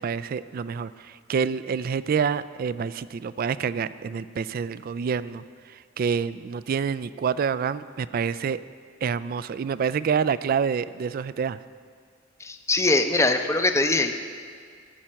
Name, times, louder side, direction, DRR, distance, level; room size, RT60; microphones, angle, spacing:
voice 1, 0.0-5.4 6.0-8.6 9.0-11.6, right 6 dB, 50° right, 16 dB, 0.3 m, -27 dB
voice 2, 12.4-14.1, left 2 dB, 15° left, 6 dB, 0.6 m, -22 dB
15.0 x 5.7 x 7.5 m, 2.2 s
head